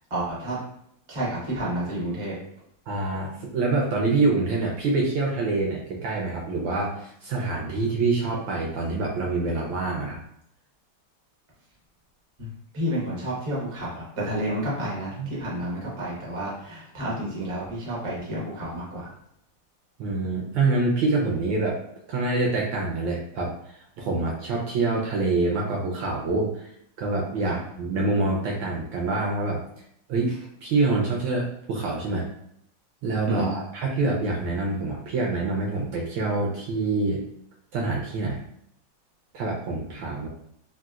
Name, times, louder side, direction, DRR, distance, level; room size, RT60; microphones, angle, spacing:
voice 1, 0.1-0.6 1.1-2.3 12.4-12.5 12.7-19.1 27.4-27.5 33.3-33.5, right 1 dB, 40° right, -6 dB, 0.4 m, -30 dB
voice 2, 2.9-10.2 15.2-15.3 20.0-21.8 22.1-26.7 27.0-29.6 30.1-32.3 33.0-37.2 37.7-38.4 39.3-40.3, right 3 dB, 75° right, -2 dB, 1.1 m, -26 dB
3.8 x 2.4 x 2.3 m, 0.71 s
omnidirectional pair, 2.4 m